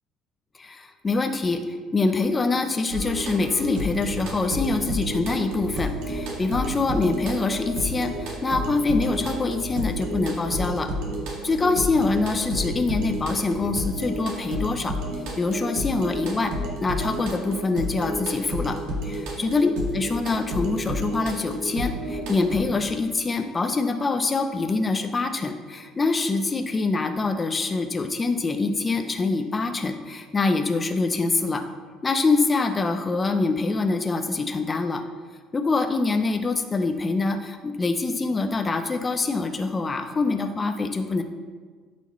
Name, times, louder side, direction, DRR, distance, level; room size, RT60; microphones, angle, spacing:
voice 1, 0.6-1.6 1.9-10.9 11.4-14.9 15.4-16.5 16.8-18.8 19.0-31.6 32.0-35.0 35.5-41.2, left 3 dB, 15° left, 6 dB, 0.5 m, -25 dB
sound 1, 2.9-22.6, equal, 85° right, 2.1 m, -31 dB
13.5 x 5.9 x 3.1 m, 1.5 s
cardioid pair, 170°, 0 cm